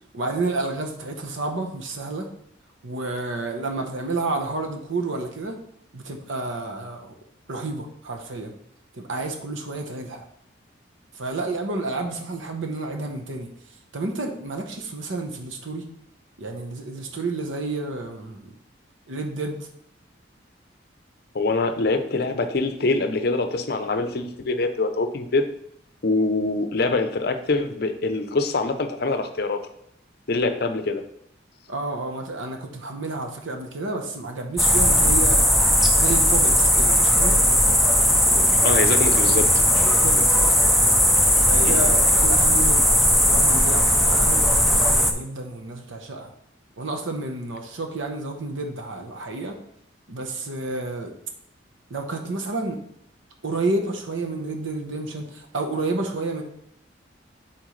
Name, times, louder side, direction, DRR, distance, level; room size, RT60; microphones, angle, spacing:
voice 1, 0.1-2.3 2.8-5.6 5.9-7.1 7.5-8.5 8.9-10.2 11.1-13.5 13.9-15.9 16.4-18.5 19.1-19.6 31.7-35.5 35.9-37.4 38.1-38.8 39.8-40.7 41.5-43.0 43.3-46.3 46.8-49.6 50.1-51.1 51.9-52.8 53.4-56.4, right 2 dB, 80° right, 3 dB, 0.9 m, -30 dB
voice 2, 21.3-25.4 26.0-29.6 30.3-31.0 38.6-39.5 41.6-41.8, left 3 dB, 55° left, 8 dB, 0.6 m, -24 dB
sound 1, 34.6-45.1, equal, ahead, 0.4 m, -18 dB
7.8 x 4.4 x 3.2 m, 0.71 s
head